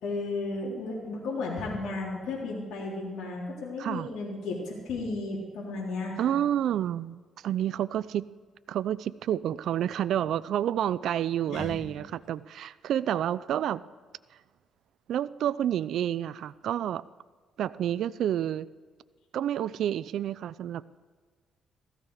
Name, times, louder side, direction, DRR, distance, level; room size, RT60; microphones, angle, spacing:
voice 1, 0.0-6.4 11.5-11.8, left 3 dB, 75° left, -5 dB, 3.7 m, -34 dB
voice 2, 6.2-8.3 8.7-13.9 15.1-17.0 17.6-18.7 19.3-20.8, right 10 dB, 75° right, 17 dB, 0.3 m, -29 dB
16.0 x 14.0 x 4.9 m, 1.5 s
cardioid pair, 90°, 0 cm